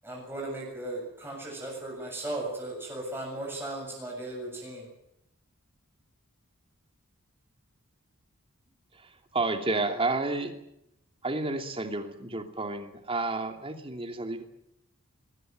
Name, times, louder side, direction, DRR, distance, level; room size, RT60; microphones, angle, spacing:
voice 1, 0.0-4.9, right 1 dB, 10° right, -2 dB, 7.5 m, -36 dB
voice 2, 8.9-10.5 11.2-14.5, right 2 dB, 25° right, 5 dB, 2.8 m, -31 dB
22.5 x 19.5 x 9.2 m, 0.82 s
head